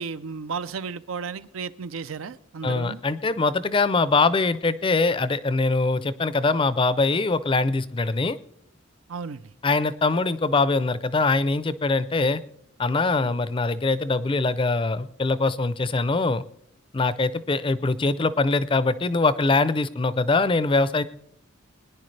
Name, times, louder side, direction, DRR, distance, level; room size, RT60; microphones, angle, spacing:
voice 1, 0.0-3.0 9.1-9.5 13.2-13.3, right 5 dB, 80° right, 14 dB, 0.5 m, -34 dB
voice 2, 2.6-8.4 9.6-12.4 12.8-16.4 16.9-21.0, left 3 dB, 25° left, 15 dB, 0.4 m, -23 dB
21.0 x 10.5 x 3.3 m, 0.71 s
head